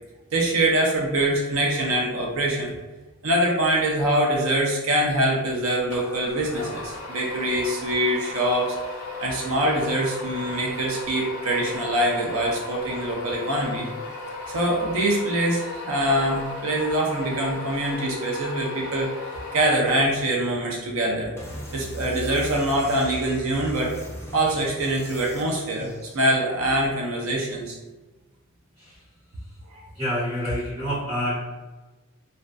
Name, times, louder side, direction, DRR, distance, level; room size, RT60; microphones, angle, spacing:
voice 1, 0.3-2.7 3.2-8.8 9.2-13.9 14.5-19.1 19.5-21.3 21.7-23.9 24.3-27.8 29.7-29.8, right 1 dB, 80° right, -2 dB, 0.5 m, -24 dB
sound 1, 5.9-20.2, left 2 dB, 80° left, 0.5 m, -35 dB
sound 2, 21.4-26.2, equal, 10° left, 0.3 m, -38 dB
voice 2, 29.9-31.4, equal, 30° right, -15 dB, 1.0 m, -27 dB
2.5 x 2.4 x 2.2 m, 1.1 s
head